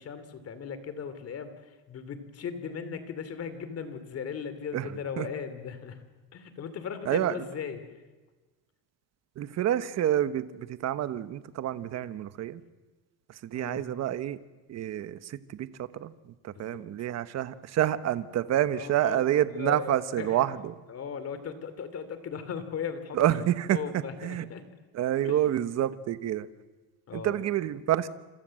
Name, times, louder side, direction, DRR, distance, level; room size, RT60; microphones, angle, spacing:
voice 1, 0.0-6.0 6.3-7.9 13.5-13.8 16.5-16.8 18.7-19.2 19.5-20.4 20.9-23.4 23.7-24.6 25.2-25.4 27.1-27.4, left 6 dB, 35° left, 11 dB, 2.8 m, -38 dB
voice 2, 9.4-12.6 13.4-14.4 14.7-16.1 16.4-20.7 23.1-24.4 24.9-26.5 27.1-28.1, right 12 dB, 35° right, 13 dB, 1.2 m, -28 dB
28.0 x 27.0 x 7.6 m, 1.2 s
cardioid pair, 155°, 43 cm